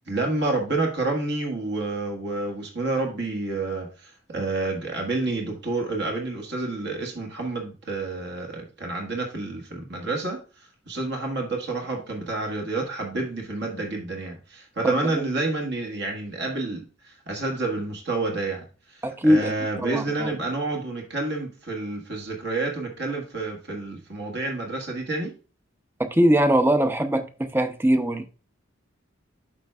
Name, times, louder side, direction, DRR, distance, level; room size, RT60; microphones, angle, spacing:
voice 1, 0.1-10.4 10.9-18.6 18.9-25.3, right 2 dB, 55° right, 1.6 m, -29 dB
voice 2, 14.8-15.2 19.0-19.5 19.8-20.4 26.0-28.2, equal, 10° right, 0.6 m, -22 dB
12.0 x 4.4 x 2.4 m
head